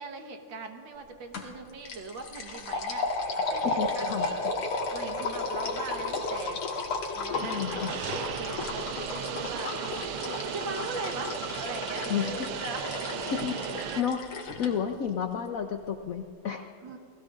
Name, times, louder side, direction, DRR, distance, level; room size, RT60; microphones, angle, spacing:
voice 1, 0.0-4.6 4.9-6.6 7.1-12.9 14.6-14.8 16.8-17.0, right 3 dB, 65° right, 4 dB, 2.0 m, -41 dB
sound 1, 1.3-1.6 1.9-14.7, left 3 dB, 90° left, 2.4 m, -33 dB
voice 2, 3.6-4.4 7.4-7.9 12.1-12.3 13.3-14.2 14.6-16.7, left 7 dB, 70° left, 5 dB, 0.8 m, -31 dB
sound 2, 7.3-14.0, right 10 dB, 85° right, 1.5 m, -36 dB
29.5 x 19.0 x 2.5 m, 2.4 s
omnidirectional pair, 2.3 m